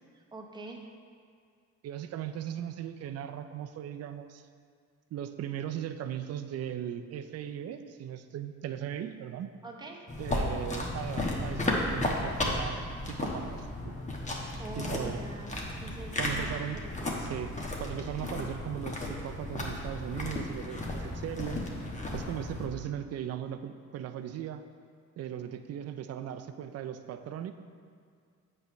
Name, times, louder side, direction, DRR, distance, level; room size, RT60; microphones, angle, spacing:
voice 1, 0.1-0.9 9.6-10.0 14.3-17.2, right 3 dB, 15° right, 0 dB, 0.9 m, -45 dB
voice 2, 1.8-4.4 5.1-9.5 10.2-14.0 14.8-15.2 16.2-16.8 17.2-21.6 22.1-24.6 25.2-27.5, right 10 dB, 55° right, 9 dB, 0.5 m, -38 dB
sound 1, 10.1-22.7, left 1 dB, 25° left, 1.1 m, -34 dB
7.9 x 3.3 x 5.8 m, 2.2 s
cardioid pair, 90°, 30 cm